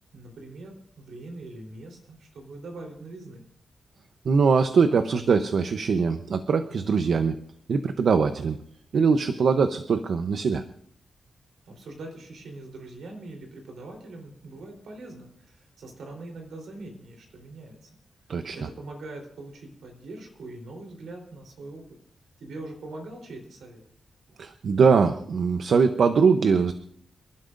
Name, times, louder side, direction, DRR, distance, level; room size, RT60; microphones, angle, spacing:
voice 1, 0.1-3.4 11.7-17.9 18.5-21.9 22.4-23.8, right 2 dB, 85° right, 2 dB, 3.6 m, -42 dB
voice 2, 4.2-7.4 7.7-8.6 8.9-10.6 18.3-18.7 24.4-26.7, right 5 dB, 70° right, 9 dB, 0.7 m, -22 dB
28.0 x 11.5 x 2.6 m, 0.67 s
cardioid pair, 95°, 0 cm